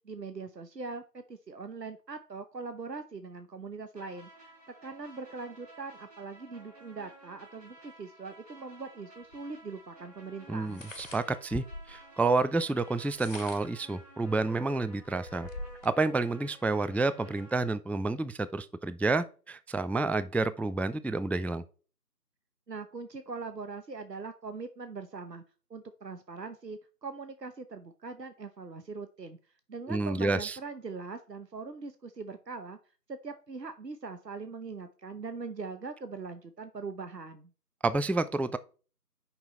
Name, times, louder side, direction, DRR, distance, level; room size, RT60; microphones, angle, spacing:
voice 1, 0.0-4.5 4.8-10.8 22.7-25.4 25.7-29.4 29.7-32.8 33.1-37.5, right 4 dB, 80° right, 1.0 m, -41 dB
sound 1, 3.9-17.7, right 2 dB, 25° right, 4.8 m, -53 dB
sound 2, 9.3-9.4 10.6-12.0 13.0-13.8 14.4-14.5 14.9-16.0, left 2 dB, 50° left, 1.6 m, -44 dB
voice 2, 10.5-15.5 15.8-21.6 29.9-30.6 37.8-38.6, right 3 dB, 5° left, 0.3 m, -29 dB
8.1 x 5.6 x 4.2 m
figure-of-eight pair, 165°, 49 cm